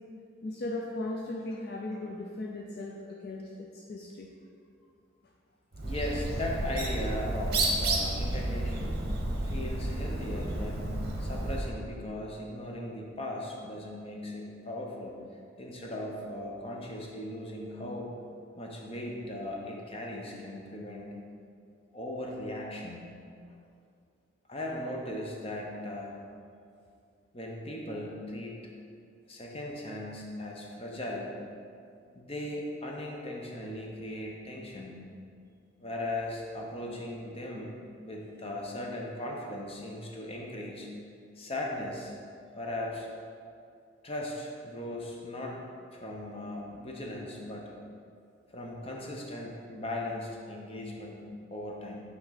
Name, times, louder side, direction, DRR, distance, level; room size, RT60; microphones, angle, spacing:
voice 1, 0.4-4.3, left 2 dB, 50° left, 0 dB, 0.4 m, -37 dB
Bird, 5.7-11.7, right 1 dB, 50° right, 0.9 m, -31 dB
voice 2, 5.8-9.1 9.4-18.1 18.6-21.1 21.9-23.0 23.5-23.6 24.5-26.2 27.3-28.6 29.3-31.4 32.1-34.9 35.8-40.9 41.4-42.1 42.5-43.1 44.0-45.6 45.9-47.7 48.5-52.0, left 1 dB, 30° left, -1 dB, 0.8 m, -38 dB
8.8 x 3.6 x 4.1 m, 2.4 s
head